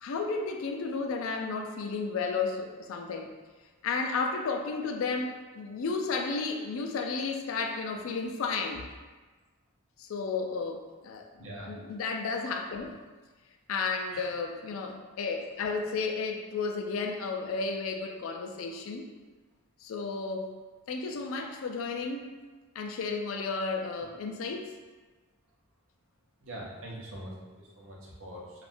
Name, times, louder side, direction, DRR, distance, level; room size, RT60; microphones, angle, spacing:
voice 1, 0.0-3.3 3.8-8.9 10.0-13.0 13.7-19.1 19.8-20.5 20.9-22.3 22.7-24.7, left 4 dB, 75° left, 4 dB, 0.4 m, -33 dB
voice 2, 11.4-11.7 14.1-14.2 26.4-28.6, right 1 dB, 65° right, -4 dB, 0.7 m, -43 dB
2.5 x 2.4 x 3.4 m, 1.3 s
head